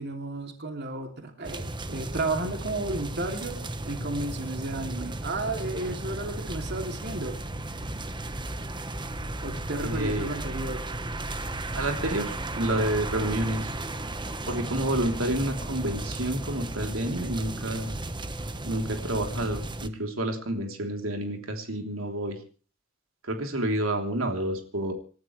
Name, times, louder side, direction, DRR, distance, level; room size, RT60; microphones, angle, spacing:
voice 1, 0.0-7.4 9.4-10.9, right 2 dB, 55° right, 4 dB, 2.8 m, -33 dB
sound 1, 1.4-19.9, right 2 dB, 25° right, 1.2 m, -35 dB
voice 2, 9.8-10.4 11.7-13.7 14.5-18.0 18.6-22.4 23.2-24.9, right 1 dB, 90° right, 4 dB, 3.4 m, -29 dB
27.5 x 12.5 x 3.3 m, 0.38 s
head